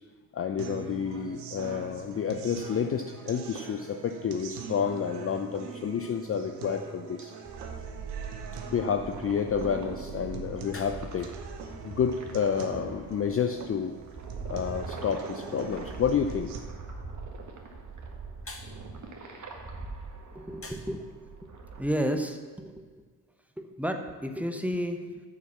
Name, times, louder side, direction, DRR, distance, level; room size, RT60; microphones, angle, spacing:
voice 1, 0.3-7.3 8.7-11.3 11.8-13.9 14.4-16.5 18.5-18.7 20.6-20.7, left 7 dB, 30° left, 6 dB, 0.5 m, -30 dB
sound 1, 0.6-16.6, right 5 dB, 80° right, 0.9 m, -44 dB
sound 2, 7.4-21.8, right 4 dB, 35° right, 1.5 m, -41 dB
voice 2, 20.3-21.0 21.8-22.8 23.6-25.2, equal, 5° right, 5 dB, 0.9 m, -32 dB
6.9 x 6.3 x 7.0 m, 1.5 s
hypercardioid pair, 45°, 48 cm